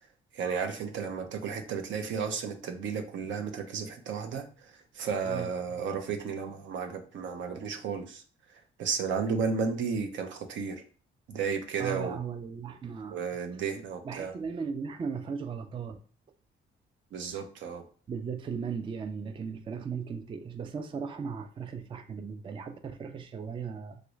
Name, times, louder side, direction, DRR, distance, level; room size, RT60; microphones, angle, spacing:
voice 1, 0.3-8.2 8.8-10.8 11.3-12.2 13.1-14.3 17.1-17.8, right 6 dB, 75° right, 0.6 m, -33 dB
voice 2, 5.2-5.8 11.8-13.2 14.0-16.0 18.1-24.0, right 6 dB, 25° right, 0.3 m, -37 dB
3.0 x 2.5 x 3.1 m
cardioid pair, 90°, 20 cm